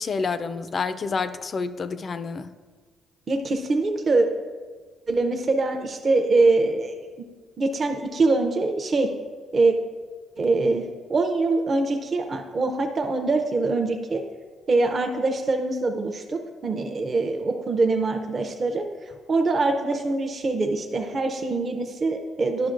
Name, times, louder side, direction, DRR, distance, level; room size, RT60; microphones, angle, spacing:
voice 1, 0.0-2.6, left 4 dB, 40° left, 0.3 m, -28 dB
voice 2, 3.3-4.3 5.1-7.0 7.6-9.1 9.5-9.7 10.4-14.2 14.7-22.7, right 3 dB, 35° right, 0.5 m, -23 dB
10.0 x 5.8 x 2.5 m
cardioid pair, 120°, 0 cm